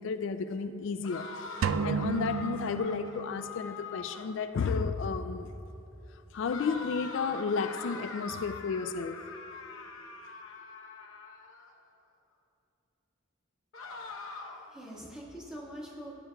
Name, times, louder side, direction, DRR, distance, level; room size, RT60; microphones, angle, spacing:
voice 1, 0.0-5.5 6.1-9.2, left 5 dB, 65° left, 0.3 m, -33 dB
sound 1, 1.0-4.4 6.5-11.7 13.7-14.8, left 4 dB, 80° left, 0.9 m, -43 dB
sound 2, 1.6-3.6, right 5 dB, 75° right, 0.3 m, -32 dB
voice 2, 14.3-16.1, equal, 5° right, 1.5 m, -44 dB
16.5 x 9.0 x 2.3 m
head